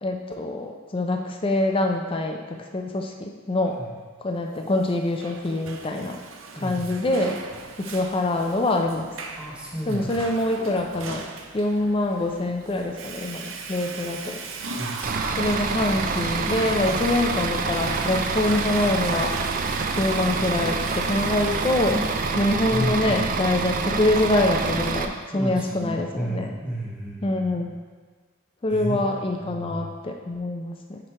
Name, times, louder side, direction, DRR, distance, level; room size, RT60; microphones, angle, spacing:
voice 1, 0.0-3.8 4.2-6.2 6.6-7.4 7.8-9.1 9.9-11.3 11.5-14.4 15.4-19.3 20.0-21.9 22.4-26.5 27.2-27.7 28.6-31.0, left 2 dB, 25° left, 3 dB, 0.5 m, -25 dB
Water / Toilet flush, 4.8-22.3, right 4 dB, 80° right, 0.6 m, -37 dB
voice 2, 6.6-7.0 9.4-10.2 14.7-15.5 21.9-22.2 22.7-23.3 25.3-27.7 28.7-29.0 29.4-29.9, equal, 5° right, -5 dB, 0.9 m, -32 dB
Bus / Idling, 15.0-25.0, right 4 dB, 45° right, 0.4 m, -27 dB
9.7 x 3.3 x 4.5 m, 1.5 s
head